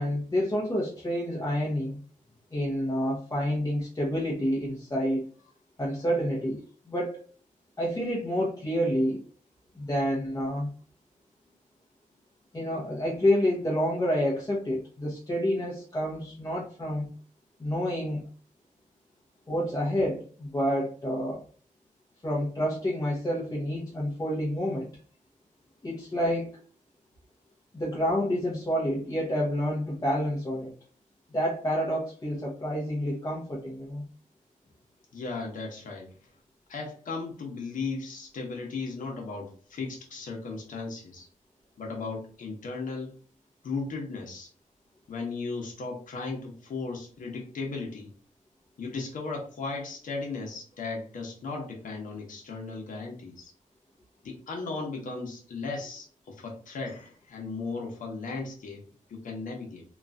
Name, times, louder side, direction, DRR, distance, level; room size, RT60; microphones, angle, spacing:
voice 1, 0.0-2.0 2.5-5.3 5.8-6.6 6.9-7.2 7.8-9.2 9.7-10.7 12.5-17.1 17.6-18.3 19.5-21.4 22.2-24.9 25.8-26.6 27.7-30.7 31.3-34.0, equal, 25° left, -5 dB, 0.8 m, -28 dB
voice 2, 35.1-36.1 36.7-41.3 41.8-43.1 43.6-44.5 45.1-48.1 48.8-53.5 54.2-58.8 59.1-59.8, left 4 dB, 75° left, 0 dB, 0.9 m, -36 dB
3.0 x 2.4 x 2.5 m, 0.42 s
cardioid pair, 80°, 14 cm